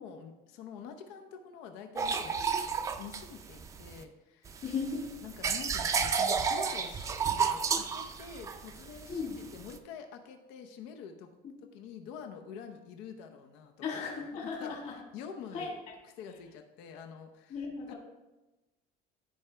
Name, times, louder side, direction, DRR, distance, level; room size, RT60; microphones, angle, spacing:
voice 1, 0.0-2.3 3.0-4.6 5.2-11.4 11.7-14.0 14.6-15.8 16.2-17.6 17.9-18.0, left 7 dB, 90° left, 6 dB, 0.9 m, -47 dB
sound 1, 2.0-4.0 4.5-9.8, right 6 dB, 15° right, 0.4 m, -32 dB
voice 2, 4.6-5.1 9.1-9.4 11.4-11.5 13.8-14.9 15.5-15.7 17.5-17.9, left 5 dB, 40° left, -2 dB, 1.8 m, -36 dB
14.5 x 5.0 x 3.4 m, 1.1 s
cardioid pair, 180°, 18 cm